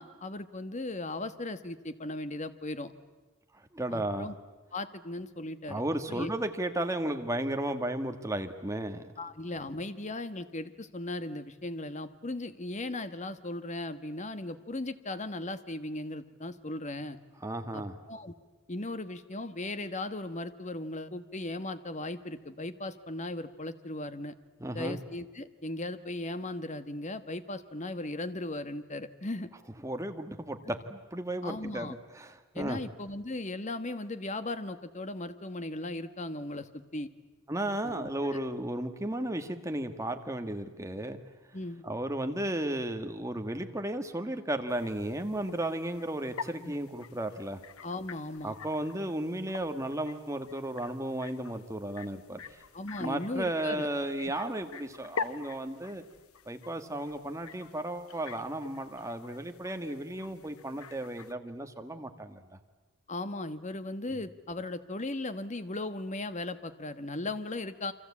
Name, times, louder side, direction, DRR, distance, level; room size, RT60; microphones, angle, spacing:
voice 1, 0.0-2.9 3.9-4.3 4.7-5.8 6.1-6.3 9.2-17.2 17.7-17.8 18.1-18.3 18.7-24.3 24.7-29.5 31.4-31.9 32.5-37.1 37.8-38.4 41.5-41.8 46.6-46.7 47.8-48.5 52.7-53.9 63.1-67.9, left 2 dB, 30° left, 11 dB, 1.2 m, -37 dB
voice 2, 3.7-4.3 5.7-9.0 17.4-17.9 24.6-25.0 29.8-32.8 37.5-41.2 41.8-47.6 48.4-52.6 53.0-56.0 56.5-62.4, right 1 dB, 15° right, 6 dB, 1.6 m, -34 dB
sound 1, 44.7-61.3, left 5 dB, 75° left, 1.0 m, -46 dB
28.0 x 25.0 x 8.5 m, 1.2 s
head